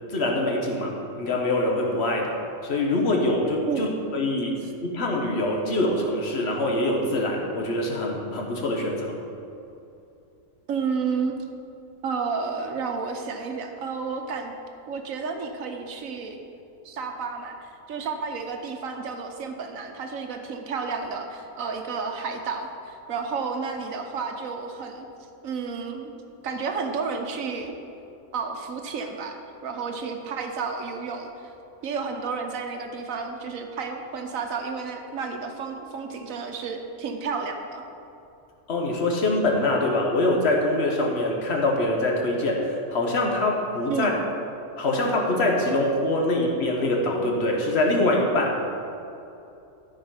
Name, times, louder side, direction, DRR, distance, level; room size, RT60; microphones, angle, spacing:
voice 1, 0.1-2.4 2.6-3.9 4.1-4.5 4.8-9.1 38.7-44.1 44.8-48.6, left 1 dB, 50° left, 0 dB, 1.5 m, -24 dB
voice 2, 10.7-11.3 12.0-14.5 14.9-16.4 16.8-25.1 25.4-26.1 26.4-27.7 28.3-29.4 29.6-31.5 31.8-37.9 43.9-44.2, right 5 dB, 70° right, 4 dB, 1.3 m, -31 dB
12.5 x 5.3 x 5.6 m, 2.7 s
omnidirectional pair, 1.5 m